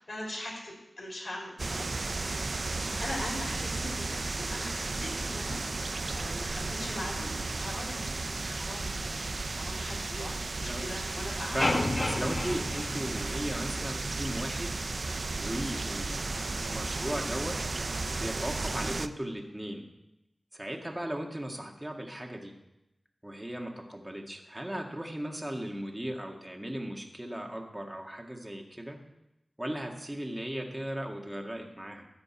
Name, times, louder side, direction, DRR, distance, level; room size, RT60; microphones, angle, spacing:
voice 1, 0.1-2.0 2.8-5.6 6.1-11.6, left 1 dB, 60° left, -3 dB, 4.9 m, -41 dB
sound 1, 1.6-19.1, right 3 dB, 60° right, 0.5 m, -34 dB
voice 2, 11.5-14.7 15.4-17.6 18.2-19.9 20.5-22.5 23.2-29.0 29.6-32.1, right 1 dB, 15° right, 2 dB, 1.8 m, -37 dB
sound 2, 11.6-13.9, left 1 dB, 45° left, 1.1 m, -31 dB
12.5 x 5.2 x 8.8 m, 0.91 s
cardioid pair, 50°, 0 cm